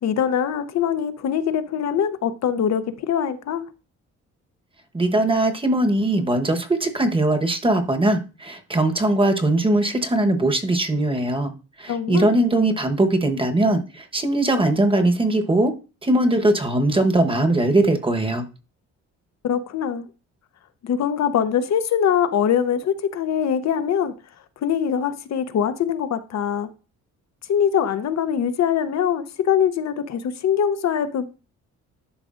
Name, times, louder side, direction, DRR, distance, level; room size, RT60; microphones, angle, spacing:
voice 1, 0.0-3.7 11.9-12.3 19.4-20.1 20.8-24.2 24.6-26.7 27.5-31.3, left 8 dB, 60° left, 0.8 m, -23 dB
voice 2, 4.9-11.5 11.8-15.7 16.0-18.4, right 2 dB, 15° right, 1.1 m, -20 dB
11.5 x 4.8 x 2.5 m
cardioid pair, 90°, 30 cm